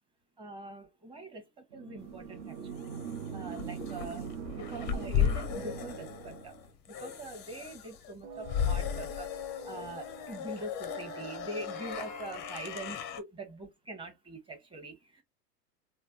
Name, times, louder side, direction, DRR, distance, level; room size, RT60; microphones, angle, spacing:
voice 1, 0.4-2.9 3.3-6.5 6.9-9.3 9.6-15.2, right 2 dB, 10° right, 0.9 m, -44 dB
sound 1, 1.7-6.7, right 7 dB, 60° right, 0.9 m, -41 dB
sound 2, 2.1-13.2, left 8 dB, 25° left, 0.5 m, -36 dB
sound 3, 8.2-10.6 10.9-12.9, right 6 dB, 25° right, 0.5 m, -49 dB
3.3 x 2.1 x 2.6 m
hypercardioid pair, 100°, 49 cm